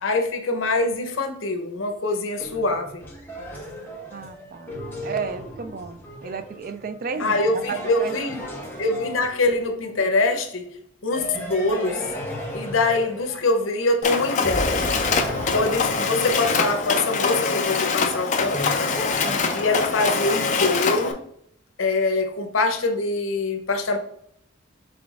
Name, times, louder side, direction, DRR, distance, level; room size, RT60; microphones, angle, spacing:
voice 1, 0.0-3.0 7.2-8.4 8.8-10.7 11.0-12.0 12.5-14.9 15.5-19.1 19.5-21.2 21.8-24.0, left 2 dB, 85° left, 5 dB, 0.8 m, -24 dB
sound 1, 2.4-9.8 11.1-14.0 14.4-20.8, equal, 10° left, 1.0 m, -35 dB
voice 2, 4.1-8.2, right 5 dB, 45° right, 11 dB, 0.3 m, -33 dB
Mechanisms, 14.0-21.1, left 4 dB, 35° left, 0.5 m, -24 dB
5.8 x 3.5 x 2.4 m, 0.72 s
head